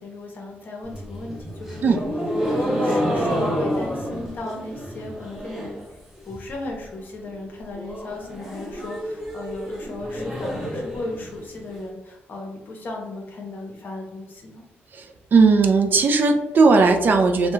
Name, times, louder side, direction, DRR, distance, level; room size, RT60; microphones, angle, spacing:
voice 1, 0.0-2.1 2.4-5.7 6.2-14.6, left 2 dB, 50° left, 0 dB, 0.7 m, -35 dB
sound 1, 0.8-5.9 6.1-6.7 7.0-7.1 7.3-7.4 7.7-11.7, equal, 5° right, 0.7 m, -28 dB
voice 2, 15.3-17.5, right 4 dB, 50° right, 4 dB, 0.3 m, -17 dB
2.3 x 2.1 x 3.0 m, 0.90 s
cardioid pair, 110°, 4 cm